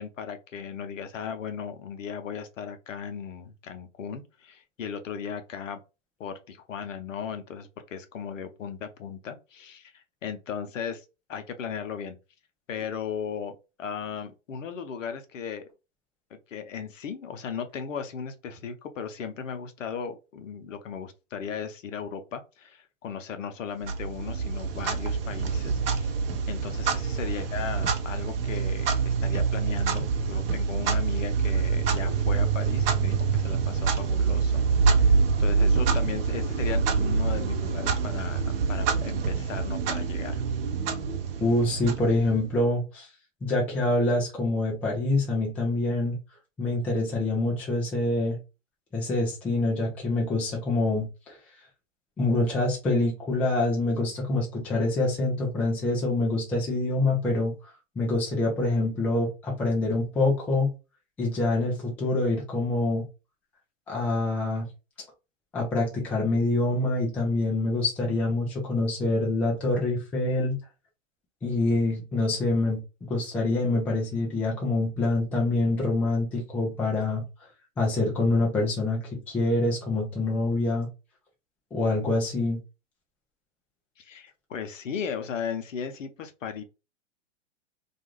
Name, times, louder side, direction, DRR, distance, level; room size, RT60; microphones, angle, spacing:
voice 1, 0.0-5.8 6.2-11.0 11.3-12.2 12.7-13.5 13.8-15.6 16.3-26.1 26.5-34.6 34.9-40.4 84.0-86.6, left 7 dB, 75° left, 0.7 m, -36 dB
Clock, 23.8-42.6, right 5 dB, 50° right, 0.6 m, -26 dB
voice 2, 41.4-43.1 43.4-46.2 46.6-48.4 48.9-51.4 52.2-57.5 58.0-60.7 61.2-63.1 63.9-64.6 65.5-70.6 71.4-77.2 77.8-80.9 81.7-82.6, left 2 dB, 5° left, 0.3 m, -26 dB
2.5 x 2.3 x 3.0 m
hypercardioid pair, 120°, 38 cm